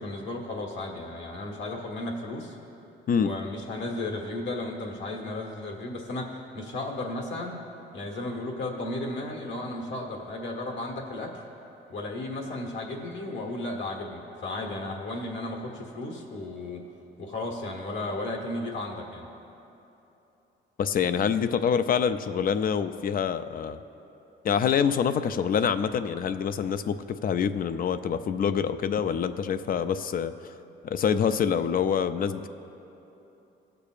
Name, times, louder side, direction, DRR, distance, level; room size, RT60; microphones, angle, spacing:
voice 1, 0.0-2.6 3.1-7.6 7.9-11.3 11.9-16.8 17.2-19.3, left 2 dB, 70° left, 0 dB, 1.4 m, -34 dB
voice 2, 20.8-23.8 24.4-30.3 30.8-32.5, left 7 dB, 45° left, 11 dB, 0.4 m, -26 dB
20.0 x 6.8 x 2.5 m, 3.0 s
cardioid pair, 90°, 20 cm